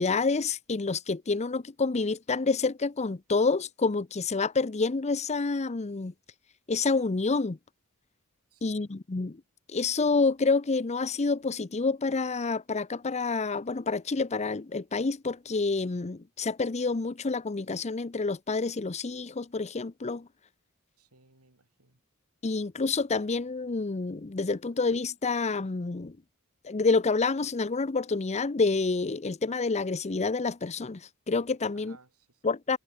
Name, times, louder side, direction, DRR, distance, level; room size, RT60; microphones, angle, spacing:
voice 1, 0.0-6.1 6.7-7.6 8.6-9.4 9.7-20.3 22.4-26.2 26.6-31.0 31.3-32.0 32.4-32.8, left 4 dB, 30° left, 0.6 m, -28 dB
voice 2, 8.5-8.9 21.0-22.0 31.7-32.4, right 3 dB, 85° right, 6.4 m, -59 dB
head